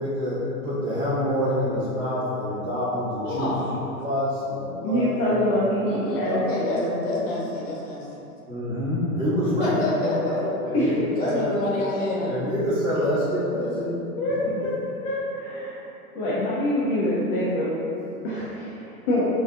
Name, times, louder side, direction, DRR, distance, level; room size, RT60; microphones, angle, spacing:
voice 1, 0.0-5.5 6.1-6.3 8.5-11.6 12.3-14.0, equal, 30° right, -9 dB, 1.1 m, -27 dB
voice 2, 3.2-3.7 5.9-8.1 9.6-10.5 11.2-12.4, left 2 dB, 55° left, -4 dB, 0.9 m, -28 dB
voice 3, 4.8-7.2 10.7-10.9 14.2-14.7 15.0-15.8 16.1-17.7 18.2-18.8 19.1-19.3, left 1 dB, 25° left, -9 dB, 0.4 m, -25 dB
3.8 x 2.7 x 2.4 m, 2.9 s
figure-of-eight pair, 105°, 45 cm